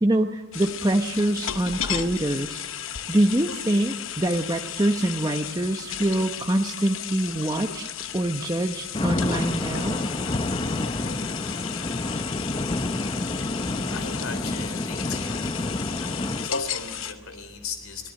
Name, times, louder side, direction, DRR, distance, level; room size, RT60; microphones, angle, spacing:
voice 1, 0.0-2.7 3.1-10.0, right 1 dB, 20° right, 4 dB, 0.9 m, -25 dB
sound 1, 0.5-17.1, left 9 dB, 65° left, 1.0 m, -34 dB
sound 2, 8.9-16.5, left 2 dB, 25° left, 0.7 m, -29 dB
voice 2, 13.8-15.5 15.8-15.9 16.4-18.1, left 5 dB, 80° left, 8 dB, 3.8 m, -37 dB
24.5 x 18.5 x 8.3 m, 1.5 s
head